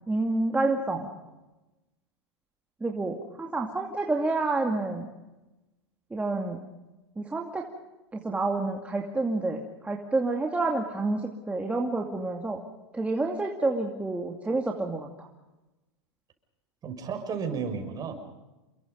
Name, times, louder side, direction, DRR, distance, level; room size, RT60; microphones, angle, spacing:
voice 1, 0.1-1.1 2.8-5.1 6.1-6.6 7.2-7.6 8.1-12.6 12.9-15.3, right 2 dB, 10° right, 1 dB, 2.4 m, -29 dB
voice 2, 16.8-18.1, right 6 dB, 25° right, 5 dB, 6.3 m, -33 dB
29.0 x 23.0 x 5.4 m, 1.1 s
hypercardioid pair, 120°, 14 cm